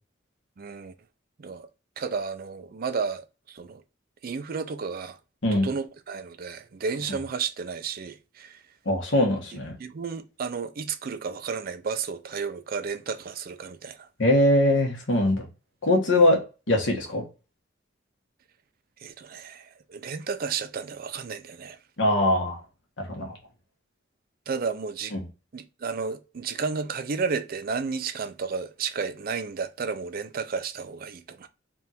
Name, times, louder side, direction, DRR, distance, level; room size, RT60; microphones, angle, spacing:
voice 1, 0.6-0.9 1.4-1.7 2.0-3.8 4.2-5.2 5.5-8.6 9.5-14.1 16.1-16.2 19.0-21.8 24.5-25.1 25.5-31.5, right 5 dB, 50° right, 0.5 m, -32 dB
voice 2, 8.8-9.8 14.2-15.5 15.8-16.4 16.7-17.2 22.0-22.6 23.0-23.4 25.1-25.2, left 1 dB, 75° left, 1.3 m, -22 dB
3.5 x 2.5 x 4.3 m
head